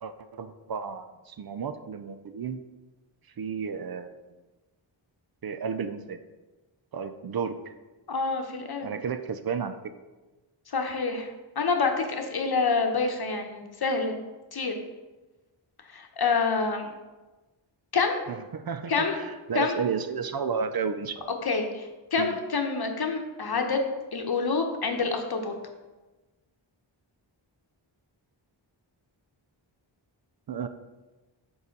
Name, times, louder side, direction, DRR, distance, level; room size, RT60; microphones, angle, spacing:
voice 1, 0.0-2.6 3.4-4.3 5.4-6.2 6.9-7.6 8.8-9.9 18.3-21.3 22.2-22.4 30.5-30.7, right 6 dB, 50° right, 10 dB, 0.5 m, -32 dB
voice 2, 8.1-8.9 10.7-11.3 11.6-14.1 14.5-14.7 15.9-16.9 17.9-18.3 18.9-19.1 19.5-19.8 21.4-23.8 24.1-25.5, left 4 dB, 50° left, 4 dB, 1.0 m, -27 dB
5.4 x 4.8 x 5.2 m, 1.2 s
wide cardioid pair, 65°, 48 cm